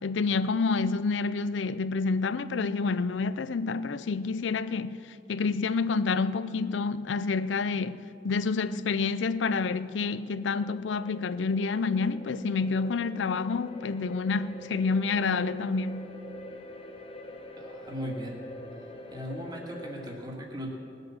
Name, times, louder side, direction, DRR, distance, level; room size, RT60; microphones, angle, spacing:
voice 1, 0.0-16.1, left 4 dB, 75° left, 0.5 m, -28 dB
sound 1, 9.9-20.2, left 1 dB, 30° left, 0.9 m, -45 dB
voice 2, 17.6-18.4 19.1-20.7, equal, 25° right, 1.9 m, -38 dB
19.0 x 8.0 x 7.2 m
head